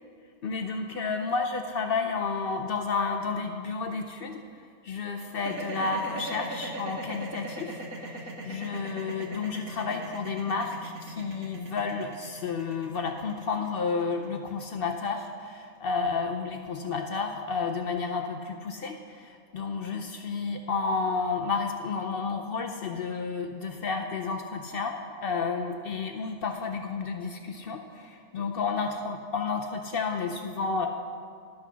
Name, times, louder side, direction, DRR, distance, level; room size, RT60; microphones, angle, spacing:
voice 1, 0.4-4.4 4.8-30.9, left 4 dB, 70° left, 5 dB, 0.5 m, -31 dB
sound 1, 5.3-15.5, right 2 dB, 65° right, 1.5 m, -39 dB
12.0 x 6.1 x 5.5 m, 2.2 s
omnidirectional pair, 1.6 m